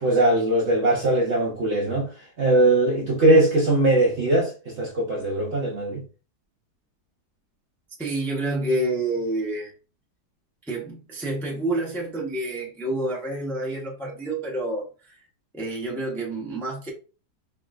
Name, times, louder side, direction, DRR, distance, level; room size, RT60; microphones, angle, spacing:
voice 1, 0.0-2.1 2.4-4.5 4.8-6.0, right 1 dB, 55° right, 0.8 m, -20 dB
voice 2, 8.0-9.7 10.7-15.2 15.5-16.9, right 2 dB, ahead, 0.5 m, -28 dB
4.6 x 2.4 x 2.4 m
omnidirectional pair, 1.9 m